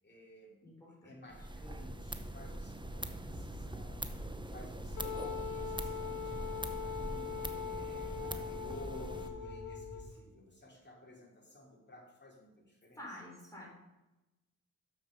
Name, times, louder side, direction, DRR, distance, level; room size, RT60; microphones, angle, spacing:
voice 1, 0.0-0.6 1.0-6.4 6.8-13.2, left 1 dB, 30° left, -1 dB, 3.2 m, -54 dB
voice 2, 0.6-1.1 13.0-13.7, left 1 dB, 10° left, -3 dB, 3.5 m, -49 dB
sound 1, 1.3-9.3, right 1 dB, 15° right, 0.8 m, -43 dB
sound 2, 1.7-10.1, right 1 dB, 80° right, 2.7 m, -50 dB
Wind instrument woodwind instrument, 5.0-10.1, left 7 dB, 60° left, 0.9 m, -41 dB
7.0 x 5.9 x 6.3 m, 1.0 s
supercardioid pair, 40°, 35 cm